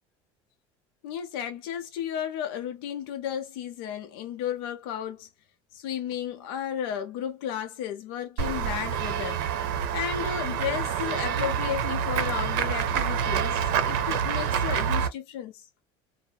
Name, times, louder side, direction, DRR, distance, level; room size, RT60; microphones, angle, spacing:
voice 1, 1.0-5.3 5.7-9.4 9.9-15.7, left 9 dB, 90° left, 0.6 m, -33 dB
Run / Walk footsteps / Bell, 8.4-15.1, right 8 dB, 80° right, 0.6 m, -27 dB
2.7 x 2.0 x 2.2 m
cardioid pair, 170°, 12 cm